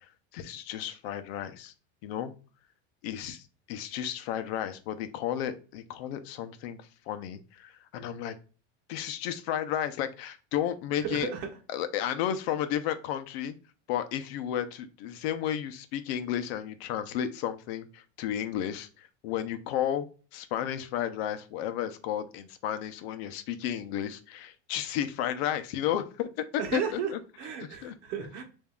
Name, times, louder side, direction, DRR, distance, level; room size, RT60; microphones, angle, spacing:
voice 1, 0.3-1.7 2.0-2.3 3.0-8.3 8.9-11.3 11.7-13.5 13.9-20.1 20.3-27.2 27.8-27.9, left 10 dB, 65° left, 0.7 m, -33 dB
voice 2, 11.0-11.5 26.6-28.4, right 7 dB, 55° right, 1.1 m, -34 dB
7.0 x 2.7 x 2.3 m
cardioid pair, 170°, 34 cm